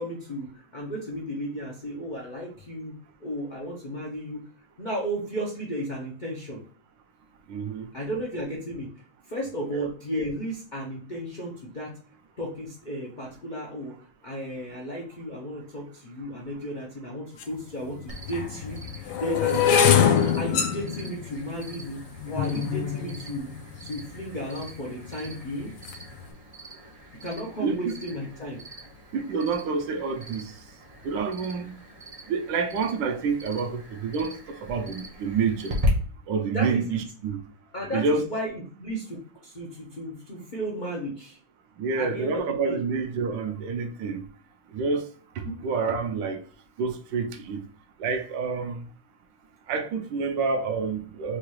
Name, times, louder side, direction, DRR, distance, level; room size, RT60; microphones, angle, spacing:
voice 1, 0.0-2.9 3.2-4.4 4.8-6.6 7.9-8.9 9.3-11.9 12.4-14.0 14.2-18.8 19.2-22.0 22.3-23.5 23.8-25.7 27.2-28.6 36.5-37.0 37.7-41.4 42.0-42.8 45.4-45.6, equal, 60° left, 0.4 m, -34 dB
voice 2, 7.5-7.9 9.7-9.9 27.6-27.9 29.1-30.5 31.0-31.7 32.3-35.8 36.3-37.4 37.9-38.2 41.8-44.2 44.7-45.0 45.4-46.4 46.8-47.6 48.0-48.9 49.7-51.4, right 5 dB, 75° right, 1.3 m, -28 dB
open the iron door, 17.4-17.5 18.3-24.4 25.1-25.4 25.7-26.1, left 8 dB, 80° left, 1.3 m, -24 dB
Cricket, 18.1-35.9, right 1 dB, 45° right, 0.4 m, -41 dB
4.7 x 2.3 x 3.0 m
omnidirectional pair, 2.1 m